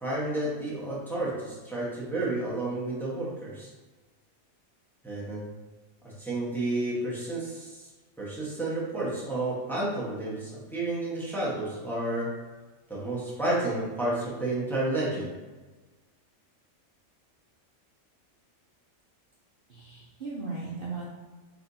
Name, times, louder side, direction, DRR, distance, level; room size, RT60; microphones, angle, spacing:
voice 1, 0.0-3.7 5.0-5.4 6.2-7.9 8.2-12.4 12.9-15.3, right 2 dB, ahead, -7 dB, 1.0 m, -31 dB
voice 2, 19.7-21.1, right 3 dB, 50° right, -5 dB, 0.8 m, -37 dB
4.4 x 4.1 x 2.7 m, 1.3 s
omnidirectional pair, 1.5 m